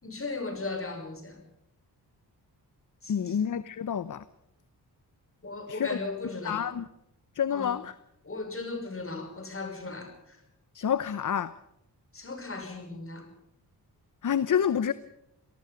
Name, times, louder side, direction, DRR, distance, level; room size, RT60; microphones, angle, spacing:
voice 1, 0.0-1.4 3.0-3.6 5.4-6.7 7.5-7.8 8.2-10.4 12.1-13.3, left 3 dB, 35° left, 6.1 m, -37 dB
voice 2, 3.1-4.2 5.7-6.0 6.4-6.9 7.4-7.9 10.7-11.5 14.2-14.9, left 8 dB, 50° left, 0.9 m, -28 dB
27.0 x 19.0 x 5.2 m
cardioid pair, 90°, 40 cm